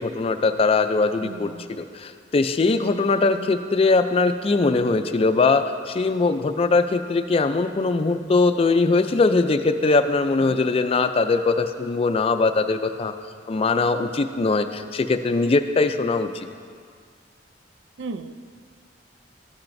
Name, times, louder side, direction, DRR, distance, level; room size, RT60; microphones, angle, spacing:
voice 1, 0.0-13.1 13.5-16.5, left 3 dB, 30° left, 9 dB, 0.4 m, -21 dB
voice 2, 1.2-1.7 18.0-18.3, right 4 dB, 75° right, 11 dB, 0.4 m, -35 dB
14.0 x 8.8 x 2.6 m, 2.1 s
head